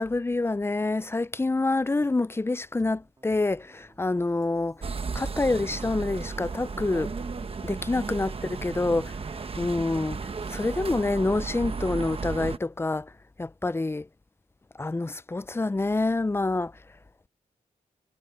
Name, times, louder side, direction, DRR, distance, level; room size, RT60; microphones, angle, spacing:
voice 1, 0.0-4.8 5.1-7.1 7.6-9.2 9.6-10.2 10.5-13.1 13.4-14.1 14.8-16.7, left 2 dB, 15° left, 0.5 m, -27 dB
sound 1, 2.8-10.9, right 2 dB, 25° right, 3.7 m, -59 dB
sound 2, 4.8-12.6, right 4 dB, 40° right, 1.1 m, -34 dB
cardioid pair, 75°, 14 cm